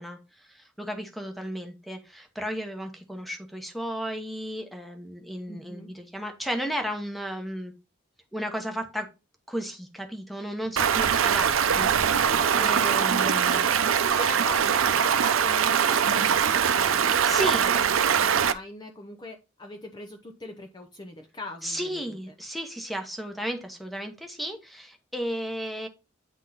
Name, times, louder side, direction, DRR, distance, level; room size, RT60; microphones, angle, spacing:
voice 1, 0.0-7.7 8.3-9.1 9.5-12.2 12.6-13.6 17.2-17.7 21.6-25.9, equal, ahead, 5 dB, 1.0 m, -34 dB
voice 2, 5.5-5.9 11.6-13.8 14.1-22.3, left 2 dB, 20° left, 3 dB, 0.7 m, -41 dB
Stream, 10.8-18.5, right 7 dB, 85° right, 0.5 m, -22 dB
8.9 x 3.6 x 4.0 m, 0.28 s
head